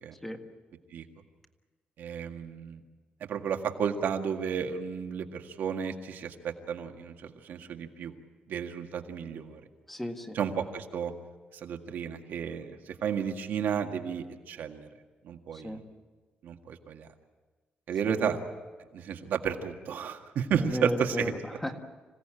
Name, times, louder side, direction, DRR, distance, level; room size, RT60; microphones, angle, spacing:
voice 1, 2.0-2.8 3.3-8.1 8.5-9.6 10.3-11.1 11.5-14.9 15.2-15.8 16.4-17.1 17.9-18.4 18.9-21.4, right 7 dB, 70° right, 4 dB, 1.9 m, -32 dB
voice 2, 9.9-10.4 15.6-15.8 18.0-18.3 20.7-21.8, left 1 dB, 5° left, 4 dB, 1.7 m, -34 dB
26.5 x 17.0 x 8.9 m, 1.4 s
wide cardioid pair, 170°, 3 cm